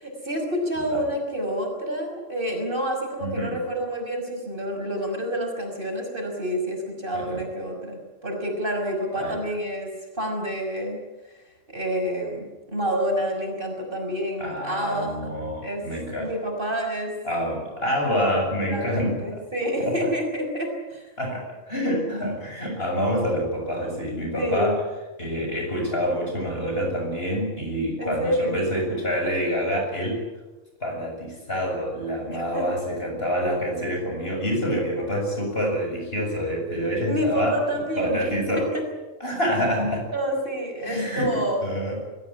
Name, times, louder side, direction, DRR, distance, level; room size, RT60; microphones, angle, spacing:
voice 1, 0.0-9.9 10.1-11.0 11.2-11.4 11.7-15.9 16.2-17.1 17.4-17.5 18.7-21.1 24.4-24.8 28.0-28.7 32.3-32.7 37.1-38.3 38.6-38.8 40.1-41.6, equal, 45° right, 2 dB, 6.0 m, -28 dB
voice 2, 3.2-3.6 7.1-7.5 9.2-9.4 14.4-16.3 17.2-19.4 19.8-20.1 21.2-24.8 25.2-30.2 30.8-37.6 38.0-38.8 39.2-40.1 40.8-42.0, equal, 50° left, 1 dB, 7.6 m, -27 dB
23.5 x 15.5 x 10.0 m, 1.1 s
omnidirectional pair, 1.3 m